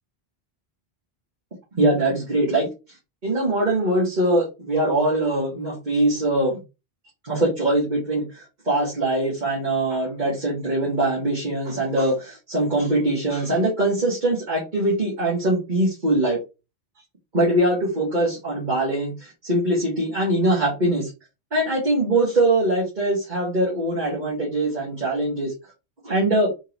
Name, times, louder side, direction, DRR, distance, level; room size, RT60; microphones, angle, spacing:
voice 1, 1.8-2.7 3.2-6.6 7.2-16.4 17.3-21.1 21.5-25.5 26.0-26.5, right 1 dB, 45° right, -5 dB, 1.7 m, -22 dB
3.7 x 3.6 x 3.0 m, 0.27 s
omnidirectional pair, 1.1 m